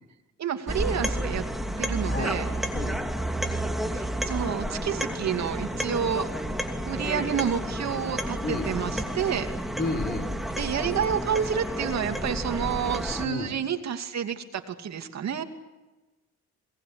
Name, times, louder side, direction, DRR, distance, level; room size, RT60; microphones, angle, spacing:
voice 1, 0.4-1.4 1.8-2.5 3.9-6.3 6.8-9.5 10.6-15.4, right 8 dB, 60° right, 6 dB, 2.7 m, -29 dB
sound 1, 0.7-13.3, right 1 dB, ahead, 2.8 m, -31 dB
voice 2, 2.0-2.3 2.7-3.0 8.4-8.7 9.8-10.3 13.2-13.5, left 3 dB, 35° left, 10 dB, 4.2 m, -31 dB
26.5 x 20.0 x 8.4 m, 1.1 s
cardioid pair, 90°, 30 cm